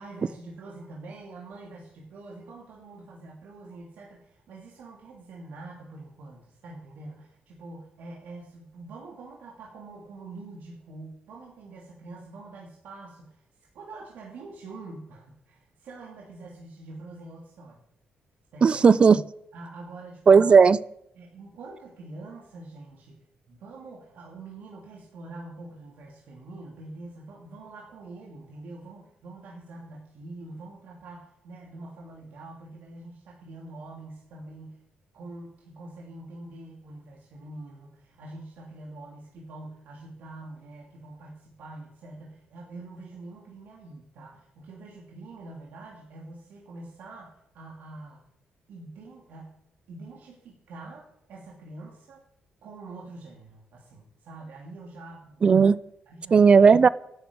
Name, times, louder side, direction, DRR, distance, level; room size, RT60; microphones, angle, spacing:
voice 1, 0.0-13.4 13.7-17.8 18.5-18.8 19.5-20.3 21.1-34.8 35.1-48.2 48.7-49.6 49.9-52.2 52.6-55.7 56.1-56.6, right 2 dB, 75° right, -2 dB, 3.0 m, -45 dB
voice 2, 18.6-19.2 20.3-20.8 55.4-55.8 56.3-56.9, right 5 dB, 35° right, 19 dB, 0.5 m, -15 dB
12.5 x 10.5 x 8.8 m, 0.78 s
cardioid pair, 120°, 3 cm